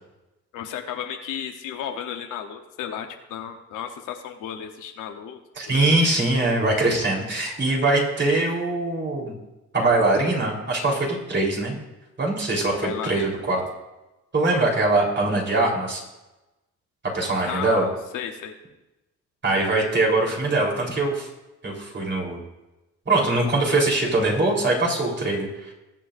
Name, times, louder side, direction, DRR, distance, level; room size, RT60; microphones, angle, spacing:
voice 1, 0.5-5.4 5.7-5.8 7.7-7.8 12.8-13.3 17.4-18.6, left 9 dB, 90° left, 5 dB, 1.0 m, -33 dB
voice 2, 5.6-9.3 9.7-11.8 12.2-13.6 14.3-16.0 17.1-17.9 19.4-21.3 21.6-22.4 23.1-25.7, right 2 dB, 40° right, -2 dB, 3.8 m, -22 dB
21.0 x 7.7 x 2.6 m, 1.0 s
cardioid pair, 90°, 30 cm